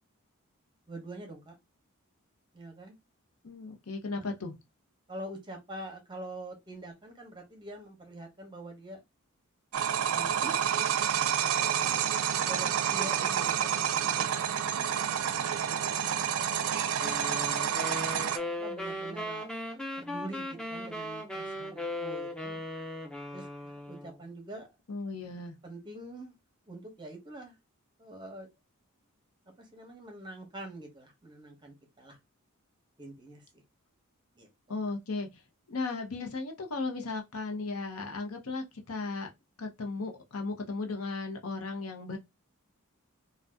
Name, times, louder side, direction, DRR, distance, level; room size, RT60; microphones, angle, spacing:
voice 1, 0.9-1.6 2.5-2.9 4.2-4.3 5.1-9.0 10.0-10.6 11.6-11.7 12.1-15.2 17.7-19.6 20.0-22.6 23.3-23.5 23.9-24.7 25.6-26.3 26.7-27.6 28.0-28.5 29.6-32.2 33.0-33.6 34.4-34.5, right 1 dB, 20° right, 0.8 m, -45 dB
voice 2, 3.4-4.5 24.9-25.5 34.7-35.4 35.7-39.3 39.6-42.2, left 3 dB, 90° left, 0.8 m, -36 dB
sound 1, 9.7-18.4, right 8 dB, 85° right, 0.4 m, -29 dB
sound 2, 17.0-24.2, left 1 dB, 5° left, 0.4 m, -38 dB
2.6 x 2.3 x 3.4 m
head